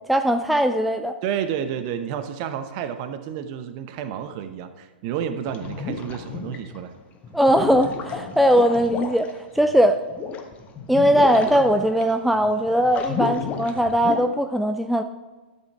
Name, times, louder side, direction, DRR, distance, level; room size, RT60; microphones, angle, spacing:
voice 1, 0.1-1.2 7.3-10.0 10.9-15.0, equal, ahead, 7 dB, 0.3 m, -20 dB
voice 2, 1.2-6.9, right 9 dB, 40° right, 9 dB, 0.8 m, -30 dB
sound 1, 5.5-6.8 7.2-14.2, left 5 dB, 25° left, 1.1 m, -32 dB
12.0 x 7.2 x 3.5 m, 1.3 s
figure-of-eight pair, 110°, 6 cm